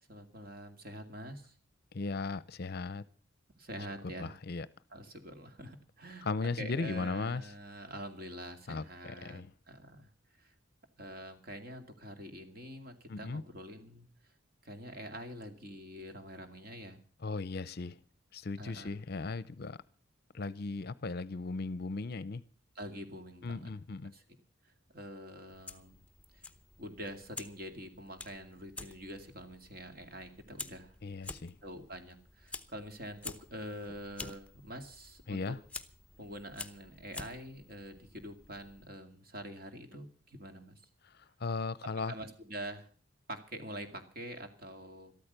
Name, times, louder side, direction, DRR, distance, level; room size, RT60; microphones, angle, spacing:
voice 1, 0.1-1.5 3.5-4.3 4.9-10.1 10.4-10.5 11.0-14.1 14.6-17.0 18.6-18.9 22.8-23.7 24.1-24.2 24.6-26.0 26.3-26.4 26.8-30.9 31.6-35.6 36.2-40.8 42.1-42.9 43.3-45.1, equal, 45° right, 6 dB, 2.3 m, -46 dB
voice 2, 1.9-3.0 4.2-4.7 6.2-7.4 8.7-9.5 13.1-13.4 17.2-18.0 18.3-19.8 20.3-22.4 23.4-24.1 31.0-31.6 35.3-35.6 41.0-42.1, left 3 dB, 50° left, 18 dB, 0.6 m, -37 dB
Fire, 25.5-38.9, left 3 dB, 5° left, 0.8 m, -49 dB
13.5 x 13.0 x 6.7 m, 0.42 s
head